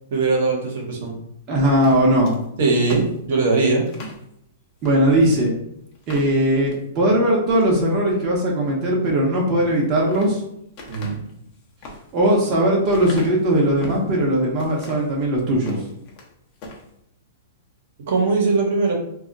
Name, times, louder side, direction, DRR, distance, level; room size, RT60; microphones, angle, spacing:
voice 1, 0.1-1.2 2.6-3.8 10.9-11.2 18.1-18.9, right 3 dB, 65° right, 0 dB, 0.9 m, -20 dB
voice 2, 1.5-2.4 4.8-5.5 6.1-10.4 12.1-15.9, right 1 dB, 30° right, -3 dB, 0.7 m, -19 dB
sound 1, 1.7-4.2 4.8-5.0 5.4-5.5 5.9-6.8 7.3-7.8 9.6-10.3 10.8-14.1 14.6-15.1 15.5-16.3 16.6-16.9, left 1 dB, 40° left, 0.7 m, -38 dB
2.3 x 2.1 x 3.8 m, 0.74 s
hypercardioid pair, 145°, 0 cm